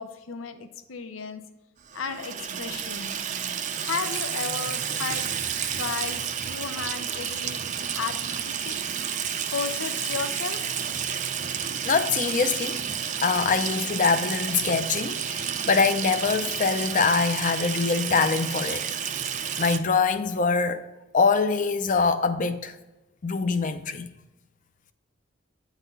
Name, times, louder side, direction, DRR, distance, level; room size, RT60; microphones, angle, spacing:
voice 1, 0.0-1.4 1.9-3.2 3.8-5.3 5.8-7.6 7.9-8.8 9.5-10.7, left 6 dB, 85° left, 0.6 m, -34 dB
Water tap faucet / Sink (filling or washing), 1.9-19.8, right 8 dB, 40° right, 0.5 m, -31 dB
voice 2, 11.8-12.8 13.2-18.8 19.6-20.8 21.1-22.8 23.2-24.1, left 4 dB, 40° left, 0.5 m, -24 dB
9.1 x 4.1 x 5.3 m
head